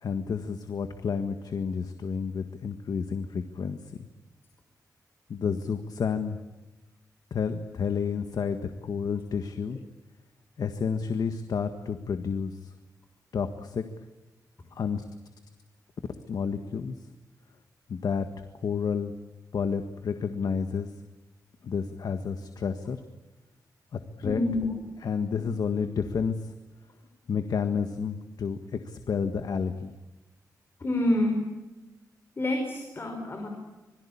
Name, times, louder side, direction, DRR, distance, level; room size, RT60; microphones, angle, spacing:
voice 1, 0.0-3.8 5.3-6.4 7.3-9.8 10.6-12.6 13.3-13.8 14.8-15.0 16.3-16.9 17.9-18.2 18.6-19.1 19.5-20.9 21.6-23.0 23.9-24.4 25.0-26.4 27.3-29.9, left 6 dB, 75° left, 8 dB, 1.6 m, -30 dB
voice 2, 24.2-24.8 30.8-31.4 32.4-33.5, left 1 dB, 35° left, 2 dB, 5.2 m, -27 dB
26.5 x 22.0 x 8.7 m, 1.1 s
wide cardioid pair, 130°, 7 cm